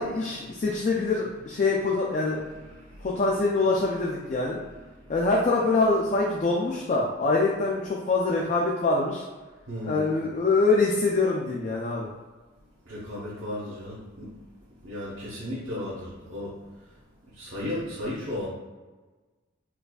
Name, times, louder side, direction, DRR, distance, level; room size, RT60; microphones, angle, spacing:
voice 1, 0.0-2.4 3.0-4.6 5.1-9.2 9.8-12.1, left 3 dB, 35° left, -2 dB, 0.3 m, -24 dB
voice 2, 2.7-3.1 9.7-10.2 12.9-14.3 14.8-16.6 17.3-18.5, left 1 dB, 70° right, -8 dB, 1.0 m, -35 dB
4.5 x 2.5 x 2.3 m, 1.3 s
head